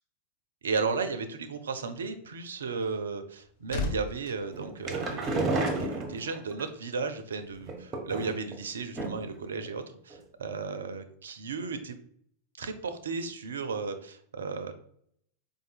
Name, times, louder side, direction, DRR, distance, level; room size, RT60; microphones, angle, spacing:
voice 1, 0.6-12.0 12.6-14.7, right 4 dB, 65° right, 9 dB, 0.4 m, -34 dB
sound 1, 3.2-5.6 5.9-6.2, left 3 dB, 50° left, 0.6 m, -38 dB
sound 2, 4.5-6.6 7.6-8.5 9.0-9.4 9.7-9.8 10.1-10.2, right 2 dB, 25° right, 0.7 m, -31 dB
4.7 x 2.5 x 2.4 m, 0.67 s
figure-of-eight pair, 90°, 0 cm